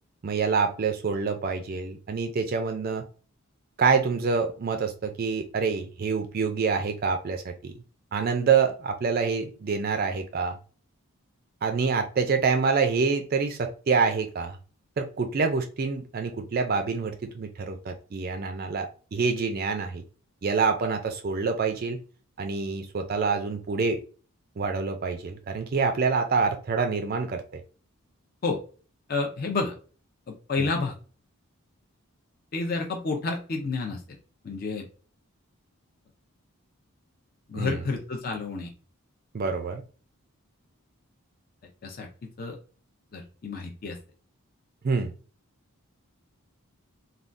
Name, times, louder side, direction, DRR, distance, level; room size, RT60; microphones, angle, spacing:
voice 1, 0.2-3.1 3.8-7.7 8.1-10.6 11.6-14.6 15.0-20.0 20.4-22.0 22.4-24.0 24.6-27.6 30.6-30.7 37.5-37.8 39.3-39.8 44.8-45.1, right 5 dB, 40° right, 0.3 m, -26 dB
voice 2, 29.1-29.8 30.3-31.0 32.5-34.0 34.4-34.9 37.5-38.7 41.8-42.1 42.4-42.6 43.1-44.0, left 3 dB, 40° left, 0.4 m, -30 dB
3.4 x 2.3 x 2.5 m
head